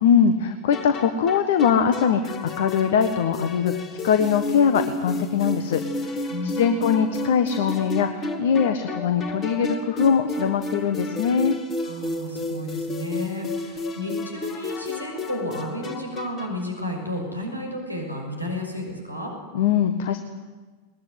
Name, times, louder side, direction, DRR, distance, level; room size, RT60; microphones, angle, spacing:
voice 1, 0.0-11.6 19.5-20.2, left 7 dB, 55° left, 9 dB, 1.4 m, -22 dB
sound 1, 0.7-16.7, left 2 dB, 25° left, 2.4 m, -32 dB
voice 2, 6.3-7.1 11.8-19.3, left 1 dB, 85° left, 1 dB, 6.2 m, -32 dB
21.0 x 20.5 x 9.6 m, 1.3 s
figure-of-eight pair, 90°, 0 cm